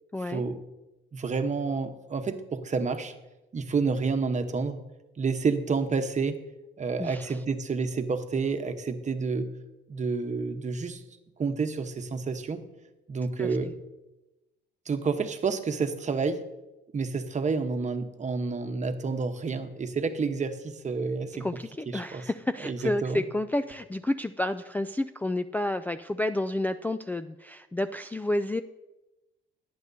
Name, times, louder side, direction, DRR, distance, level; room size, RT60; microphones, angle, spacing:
voice 1, 0.1-0.4 7.0-7.4 13.4-13.7 21.4-28.6, left 1 dB, 10° left, 8 dB, 0.3 m, -30 dB
voice 2, 1.1-3.1 3.5-4.8 5.2-6.4 6.8-9.5 9.9-11.0 11.4-12.6 13.1-13.7 14.9-16.4 16.9-21.5 21.9-22.3 22.6-23.2, right 4 dB, 35° right, 7 dB, 1.0 m, -29 dB
17.5 x 9.3 x 2.7 m, 1.0 s
cardioid pair, 90°, 20 cm